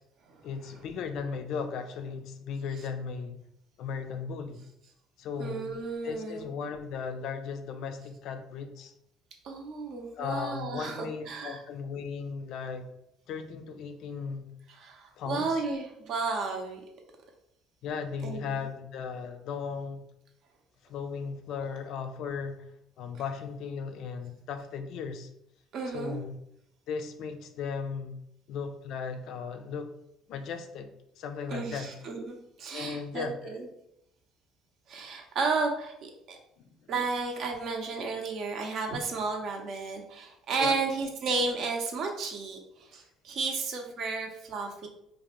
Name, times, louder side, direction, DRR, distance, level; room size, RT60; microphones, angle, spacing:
voice 1, 0.4-3.4 3.8-4.6 5.2-5.7 6.0-8.9 10.2-12.9 13.3-14.5 15.2-15.6 17.8-20.0 20.9-22.6 23.0-25.3 25.9-26.3 26.9-28.2 28.5-29.9 30.3-31.9 32.7-33.4 36.6-36.7 40.6-40.8, left 6 dB, 65° left, 7 dB, 0.3 m, -36 dB
voice 2, 5.4-6.4 9.4-11.6 14.8-16.8 18.2-18.6 25.7-26.2 31.5-33.7 34.9-36.4 36.9-44.9, right 4 dB, 60° right, 3 dB, 0.5 m, -33 dB
2.5 x 2.0 x 2.9 m, 0.77 s
supercardioid pair, 90°, 0 cm